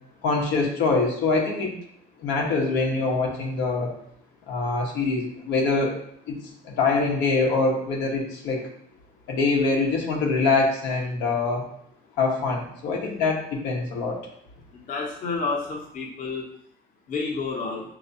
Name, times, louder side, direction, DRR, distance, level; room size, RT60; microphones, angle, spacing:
voice 1, 0.2-1.7 2.2-3.9 4.5-6.0 6.3-6.4 6.6-8.7 9.3-11.7 12.2-14.2, left 3 dB, 90° left, -1 dB, 1.3 m, -24 dB
voice 2, 14.7-16.4 17.1-17.8, left 4 dB, 50° left, -2 dB, 1.0 m, -30 dB
5.8 x 3.0 x 2.7 m, 0.69 s
cardioid pair, 110°, 17 cm